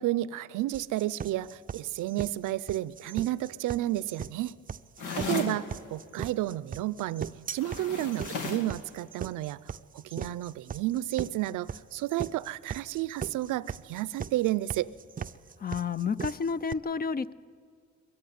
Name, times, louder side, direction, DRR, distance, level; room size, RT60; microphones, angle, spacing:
voice 1, 0.0-4.6 5.2-5.6 5.9-9.6 9.9-14.9, right 15 dB, 85° right, 19 dB, 0.6 m, -31 dB
sound 1, 0.7-16.7, right 7 dB, 30° right, 0.5 m, -39 dB
sound 2, 5.0-5.6 7.5-8.7, left 4 dB, 90° left, 2.1 m, -35 dB
voice 2, 5.0-5.6 15.6-17.3, left 6 dB, 30° left, 17 dB, 0.5 m, -31 dB
20.5 x 14.5 x 9.5 m, 2.3 s
cardioid pair, 90°, 30 cm